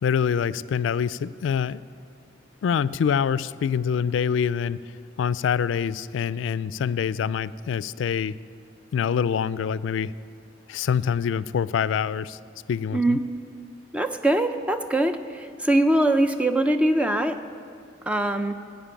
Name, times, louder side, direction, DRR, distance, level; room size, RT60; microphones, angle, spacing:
voice 1, 0.0-1.8 2.6-4.8 5.2-8.4 8.9-10.1 10.7-12.4 12.7-13.2, left 7 dB, 85° left, 17 dB, 0.3 m, -25 dB
voice 2, 13.9-17.4 18.1-18.6, right 1 dB, 5° right, 7 dB, 0.4 m, -22 dB
15.0 x 5.2 x 8.9 m, 2.3 s
head